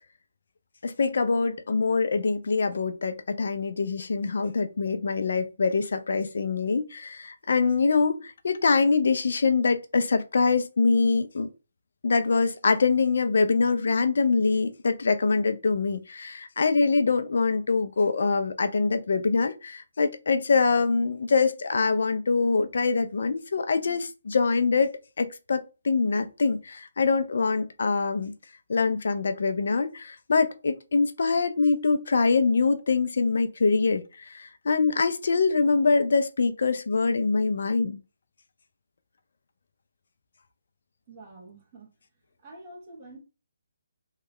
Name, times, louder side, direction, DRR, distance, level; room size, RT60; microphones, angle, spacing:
voice 1, 0.8-11.5 12.0-28.3 28.7-38.0, left 4 dB, 60° left, 0.5 m, -24 dB
voice 2, 41.1-41.9 42.4-43.2, right 2 dB, 20° right, 1.0 m, -46 dB
3.1 x 2.3 x 3.5 m
hypercardioid pair, 170°, 0 cm